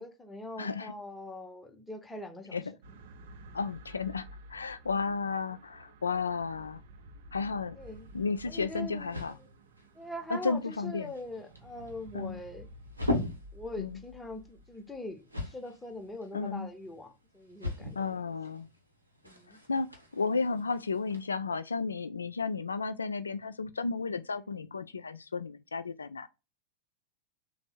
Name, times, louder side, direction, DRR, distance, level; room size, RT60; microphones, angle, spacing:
voice 1, 0.0-2.6 7.8-8.1 8.4-9.5 9.9-12.7 13.5-18.2 19.2-19.6 24.3-24.5, left 1 dB, 10° left, 0.8 m, -42 dB
voice 2, 0.6-0.9 2.5-2.6 3.5-6.8 7.3-7.8 8.1-9.4 10.3-11.1 12.1-12.4 13.8-14.0 16.3-16.7 17.9-18.7 19.7-26.3, left 4 dB, 75° left, 0.3 m, -33 dB
sound 1, 2.8-17.1 17.9-18.0, right 1 dB, 55° right, 0.5 m, -53 dB
sound 2, 7.8-21.2, left 2 dB, 85° right, 0.7 m, -41 dB
3.4 x 2.1 x 4.3 m
figure-of-eight pair, 90°, 0 cm